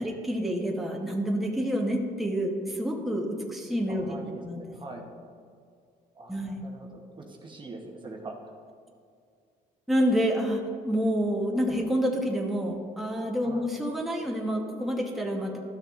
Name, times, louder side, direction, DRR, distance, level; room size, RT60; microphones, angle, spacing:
voice 1, 0.0-4.6 6.3-6.6 9.9-15.6, equal, ahead, -1 dB, 1.0 m, -28 dB
voice 2, 3.9-5.1 6.1-8.5 13.4-13.7, right 2 dB, 30° right, 1 dB, 1.0 m, -43 dB
13.0 x 6.4 x 2.5 m, 2.3 s
cardioid pair, 110°, 17 cm